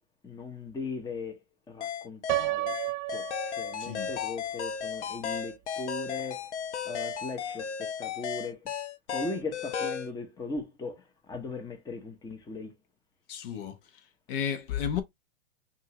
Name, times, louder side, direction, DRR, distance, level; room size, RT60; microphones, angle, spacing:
voice 1, 0.2-2.8 3.1-8.7 9.1-12.7, left 3 dB, 10° left, 0.9 m, -39 dB
sound 1, 1.8-10.1, left 7 dB, 75° left, 0.9 m, -35 dB
Piano, 2.3-4.3, right 20 dB, 45° right, 0.4 m, -32 dB
voice 2, 3.8-4.1 13.3-13.8 14.3-15.0, left 8 dB, 50° left, 1.1 m, -32 dB
5.4 x 2.5 x 2.9 m
hypercardioid pair, 120°, 35 cm